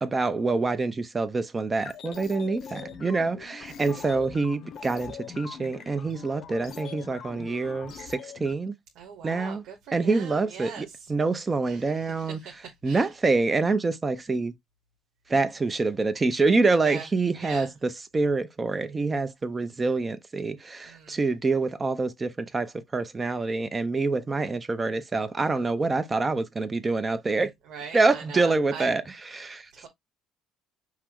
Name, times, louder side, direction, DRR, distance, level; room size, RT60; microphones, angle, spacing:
voice 1, 0.0-8.7 9.2-9.6 9.9-12.4 12.8-14.5 15.3-27.5 27.9-29.0 29.3-29.9, right 3 dB, 15° right, 0.5 m, -26 dB
sound 1, 1.7-8.5, left 7 dB, 45° left, 0.7 m, -42 dB
voice 2, 3.8-4.2 9.0-11.1 11.7-13.1 16.8-17.1 17.4-17.7 20.8-21.2 27.7-28.9 29.7-29.9, right 7 dB, 60° right, 1.2 m, -42 dB
5.7 x 2.0 x 4.6 m
cardioid pair, 160°, 0 cm